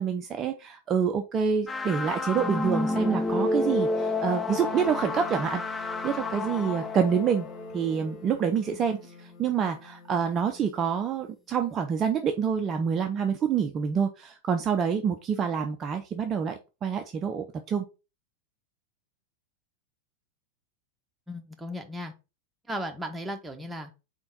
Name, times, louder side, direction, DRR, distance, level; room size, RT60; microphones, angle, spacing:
voice 1, 0.0-7.5 7.7-17.9, right 7 dB, 25° right, 5 dB, 0.6 m, -27 dB
sound 1, 1.7-8.5, left 2 dB, 10° left, 0.5 m, -30 dB
Wind instrument woodwind instrument, 4.5-11.5, left 5 dB, 50° left, 1.0 m, -48 dB
voice 2, 21.3-22.1 22.7-23.9, equal, 10° right, 3 dB, 1.2 m, -36 dB
4.4 x 4.4 x 5.4 m, 0.29 s
figure-of-eight pair, 90°, 0 cm